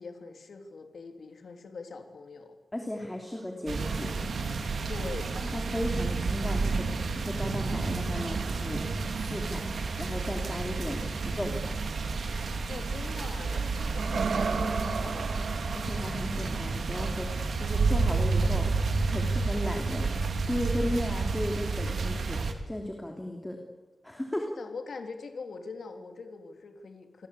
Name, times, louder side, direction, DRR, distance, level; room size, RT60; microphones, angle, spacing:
voice 1, 0.0-2.6 4.9-5.4 12.7-15.5 24.6-27.3, left 4 dB, 65° left, 6 dB, 3.0 m, -43 dB
voice 2, 2.7-4.1 5.5-8.8 9.1-9.6 10.0-11.5 15.7-18.7 19.1-20.2 20.5-23.6 24.0-24.5, left 1 dB, 10° left, 2 dB, 3.2 m, -35 dB
sound 1, 3.3-4.6 7.4-13.2 13.8-18.8 21.2-21.3, right 5 dB, 85° right, 2.9 m, -38 dB
sound 2, 3.7-22.5, right 4 dB, 65° right, 3.0 m, -30 dB
28.5 x 21.5 x 8.5 m, 1.1 s
wide cardioid pair, 165°, 0 cm